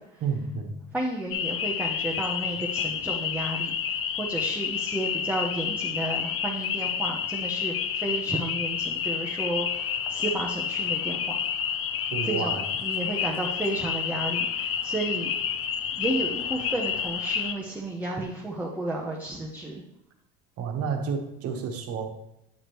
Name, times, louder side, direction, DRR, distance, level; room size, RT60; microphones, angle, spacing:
voice 1, 0.2-0.8 12.1-12.7 20.6-22.1, right 5 dB, 50° right, 4 dB, 1.3 m, -30 dB
voice 2, 0.9-11.4 12.2-15.3 16.0-19.8, right 2 dB, 5° right, -2 dB, 0.8 m, -32 dB
sound 1, 1.3-17.5, left 8 dB, 45° left, 0.7 m, -29 dB
9.3 x 4.9 x 3.1 m, 0.85 s
supercardioid pair, 120°, 31 cm